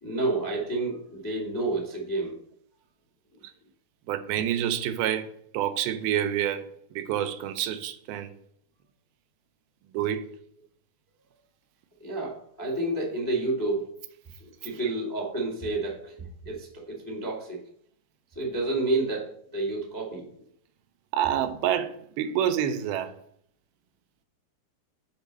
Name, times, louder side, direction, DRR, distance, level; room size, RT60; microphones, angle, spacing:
voice 1, 0.0-2.4 12.0-13.9 14.4-16.1 16.4-17.6 18.3-20.3, right 2 dB, 30° left, 0.4 m, -30 dB
voice 2, 4.1-6.7 7.0-8.3 9.9-10.3 21.1-23.1, right 10 dB, 90° right, 2.6 m, -28 dB
7.2 x 4.5 x 5.3 m
omnidirectional pair, 4.2 m